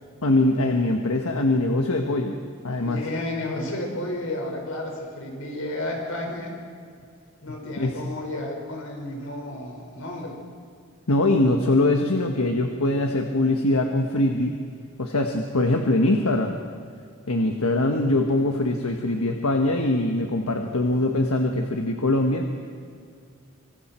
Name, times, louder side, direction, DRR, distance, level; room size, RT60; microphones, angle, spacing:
voice 1, 0.2-2.4 2.6-3.0 7.8-7.9 11.1-14.6 15.0-16.6 17.3-22.5, left 2 dB, 85° left, 3 dB, 1.4 m, -22 dB
voice 2, 2.8-6.5 7.4-10.4, left 1 dB, 70° left, 0 dB, 5.2 m, -32 dB
25.5 x 24.5 x 4.5 m, 2.2 s
head